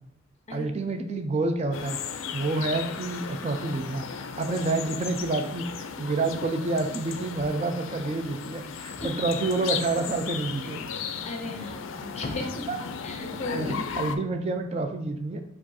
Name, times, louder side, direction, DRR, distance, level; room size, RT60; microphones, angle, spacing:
voice 1, 0.5-2.0 2.3-10.8 12.7-12.8 13.5-15.4, right 3 dB, 35° right, 6 dB, 0.3 m, -28 dB
sound 1, 1.7-14.2, left 6 dB, 85° left, 0.4 m, -36 dB
voice 2, 11.2-12.7 13.0-14.0, left 2 dB, 35° left, 3 dB, 0.6 m, -35 dB
4.7 x 2.5 x 4.0 m, 0.73 s
head